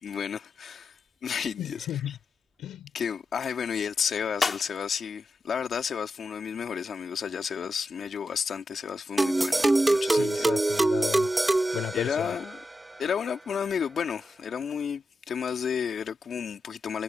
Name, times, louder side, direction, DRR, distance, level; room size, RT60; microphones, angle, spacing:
voice 1, 0.0-2.2 2.9-10.5 11.9-12.6 13.0-17.0, left 7 dB, 50° left, 2.6 m, -32 dB
sound 1, 0.8-6.7, left 4 dB, 30° left, 5.1 m, -39 dB
voice 2, 1.6-2.2 2.6-2.9 10.0-11.3 11.7-12.3, left 11 dB, 75° left, 4.4 m, -34 dB
sound 2, 9.2-12.6, right 2 dB, 15° right, 2.0 m, -24 dB
cardioid pair, 105°, 0 cm